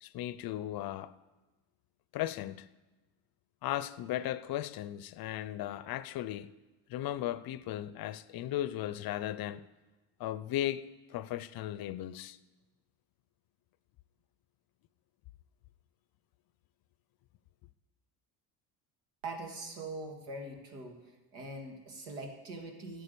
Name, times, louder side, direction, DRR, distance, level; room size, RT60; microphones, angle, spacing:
voice 1, 0.0-1.1 2.1-2.7 3.6-6.5 6.9-9.6 10.2-12.4, left 13 dB, 50° left, 0.6 m, -36 dB
voice 2, 19.2-21.0 21.3-23.0, right 2 dB, 80° right, 2.3 m, -42 dB
11.5 x 8.0 x 6.8 m
supercardioid pair, 80°, 47 cm